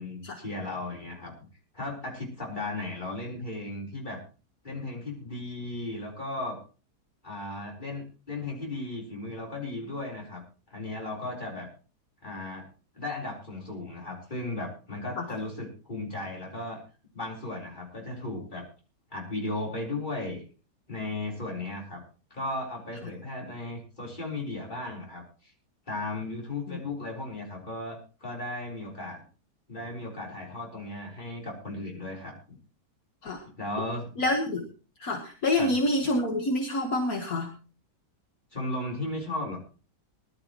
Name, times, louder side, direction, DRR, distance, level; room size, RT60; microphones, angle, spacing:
voice 1, 0.0-1.3 1.7-4.2 4.6-6.6 7.2-10.4 10.7-11.7 12.2-12.7 12.9-16.8 17.1-18.6 19.1-20.4 20.9-22.0 22.3-25.5 25.9-29.2 29.7-32.6 33.6-34.1 35.6-35.7 38.5-39.6, left 2 dB, 30° left, -2 dB, 4.2 m, -36 dB
voice 2, 34.2-34.7 35.0-37.5, left 1 dB, 60° left, 3 dB, 1.8 m, -27 dB
20.5 x 12.0 x 3.0 m, 0.36 s
omnidirectional pair, 1.7 m